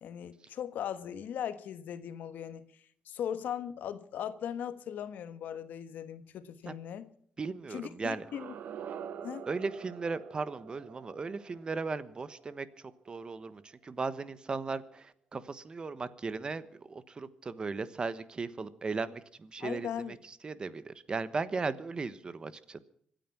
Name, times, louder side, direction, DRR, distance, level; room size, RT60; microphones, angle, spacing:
voice 1, 0.0-2.6 3.0-7.1 7.7-8.5 9.2-9.4 19.6-20.2, left 9 dB, 75° left, 13 dB, 1.3 m, -38 dB
voice 2, 7.4-8.2 9.5-12.7 13.1-22.8, right 4 dB, 30° right, 15 dB, 1.2 m, -37 dB
sound 1, 8.2-13.1, right 8 dB, 65° right, 1.2 m, -46 dB
25.5 x 9.2 x 6.0 m, 0.64 s
cardioid pair, 125°, 3 cm